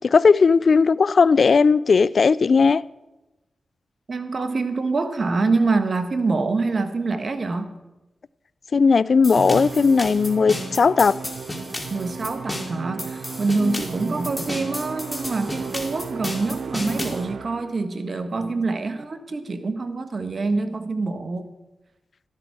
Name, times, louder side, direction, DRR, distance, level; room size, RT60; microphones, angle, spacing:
voice 1, 0.0-2.8 8.7-11.2 13.6-13.8, left 5 dB, 65° left, 0.3 m, -17 dB
voice 2, 4.1-7.7 11.9-21.5, right 3 dB, 55° right, 1.4 m, -25 dB
sound 1, 9.2-17.2, left 1 dB, 25° left, 2.9 m, -33 dB
Musical instrument, 9.4-17.9, right 6 dB, 80° right, 0.4 m, -35 dB
13.5 x 12.0 x 4.7 m
cardioid pair, 45°, 0 cm